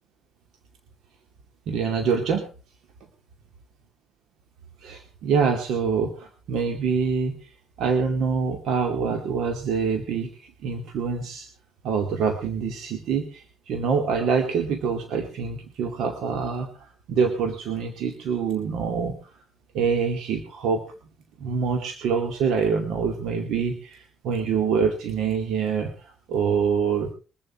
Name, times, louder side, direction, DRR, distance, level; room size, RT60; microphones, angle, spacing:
voice 1, 1.7-2.5 4.8-7.5 7.8-11.5 11.8-19.3 19.7-20.8 21.4-27.1, right 6 dB, 80° right, 5 dB, 2.3 m, -25 dB
22.5 x 7.7 x 5.8 m, 0.36 s
cardioid pair, 90°, 0 cm